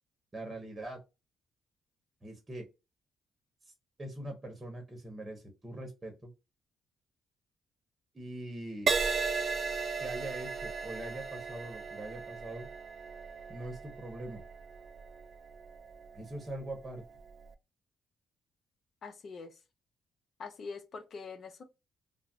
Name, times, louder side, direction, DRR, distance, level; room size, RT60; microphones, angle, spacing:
voice 1, 0.3-1.0 2.2-2.7 4.0-6.3 8.1-8.9 10.0-12.7 13.5-14.4 16.1-17.0, right 1 dB, 25° right, 0.9 m, -42 dB
Crash cymbal, 8.9-16.5 17.2-17.5, right 4 dB, 55° right, 0.4 m, -36 dB
voice 2, 19.0-19.5 20.4-21.6, left 4 dB, 55° left, 0.6 m, -44 dB
2.5 x 2.0 x 3.5 m
cardioid pair, 90°, 0 cm